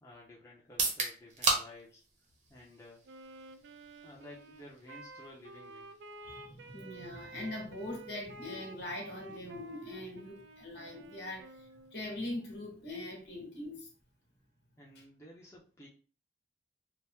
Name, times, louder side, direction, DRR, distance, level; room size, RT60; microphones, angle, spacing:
voice 1, 0.0-2.0 2.5-3.0 4.0-5.9 14.8-15.9, left 1 dB, 15° left, -4 dB, 0.6 m, -53 dB
sound 1, 0.6-14.5, right 3 dB, 40° right, 0.7 m, -41 dB
Wind instrument woodwind instrument, 3.1-12.0, right 3 dB, 75° right, 0.3 m, -51 dB
voice 2, 6.2-13.9, left 1 dB, 65° left, 0 dB, 1.1 m, -42 dB
2.8 x 2.0 x 3.4 m, 0.39 s
head